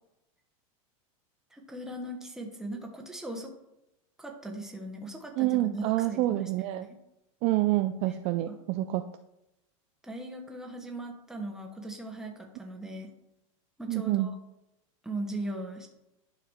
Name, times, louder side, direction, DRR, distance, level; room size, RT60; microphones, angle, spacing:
voice 1, 1.5-3.5 4.2-7.0 8.1-8.2 8.5-8.6 10.0-13.1 13.8-14.3 15.0-15.9, right 1 dB, 5° right, 1 dB, 1.2 m, -39 dB
voice 2, 5.4-6.9 7.4-9.0 13.9-14.3, right 16 dB, 35° right, 8 dB, 0.4 m, -27 dB
11.0 x 4.9 x 3.6 m, 0.90 s
supercardioid pair, 140°, 17 cm